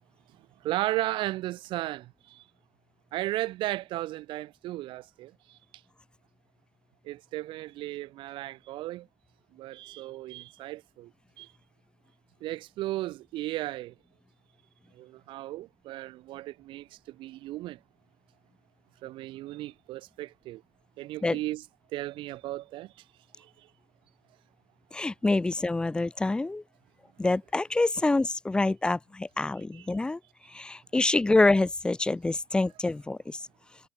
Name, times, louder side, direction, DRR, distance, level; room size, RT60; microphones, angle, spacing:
voice 1, 0.6-2.4 3.1-5.3 7.0-9.1 9.5-11.1 11.4-11.5 12.4-13.9 15.0-17.8 19.0-20.6 21.0-21.6 21.9-22.9 23.4-23.5 29.7-29.9, right 16 dB, 65° right, 2.8 m, -35 dB
voice 2, 24.9-26.6 27.2-30.2 30.5-33.4, left 2 dB, 10° left, 4.5 m, -26 dB
cardioid pair, 175°, 9 cm